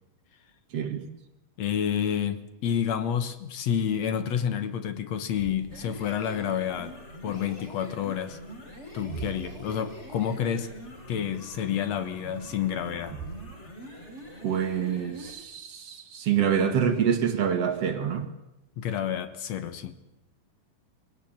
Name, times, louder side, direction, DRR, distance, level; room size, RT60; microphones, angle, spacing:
voice 1, 0.7-1.0 14.4-18.3, right 8 dB, 50° right, 2.2 m, -26 dB
voice 2, 1.6-7.0 7.2-8.4 8.9-10.7 11.1-13.2 18.8-20.1, left 8 dB, 60° left, 1.9 m, -29 dB
sound 1, 5.4-13.6, right 6 dB, 75° right, 3.3 m, -46 dB
sound 2, 5.6-15.4, equal, 20° left, 3.6 m, -44 dB
24.0 x 18.5 x 8.8 m
omnidirectional pair, 4.4 m